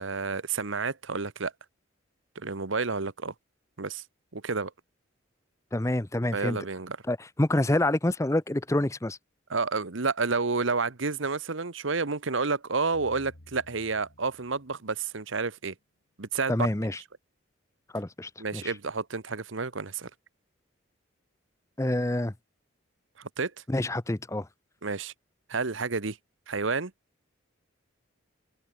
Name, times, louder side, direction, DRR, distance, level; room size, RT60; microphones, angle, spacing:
voice 1, 0.0-1.5 2.3-3.3 3.8-4.0 4.3-4.7 6.3-7.0 9.5-15.7 16.2-16.7 18.4-20.1 23.2-23.5 24.8-25.1 25.5-26.2 26.5-26.9, right 4 dB, 70° right, 1.2 m, -30 dB
voice 2, 5.7-6.6 7.1-9.2 16.5-17.0 17.9-18.7 21.8-22.3 23.7-24.5, left 1 dB, 15° left, 0.6 m, -27 dB
sound 1, 12.9-15.3, left 1 dB, 80° left, 3.2 m, -54 dB
open air
head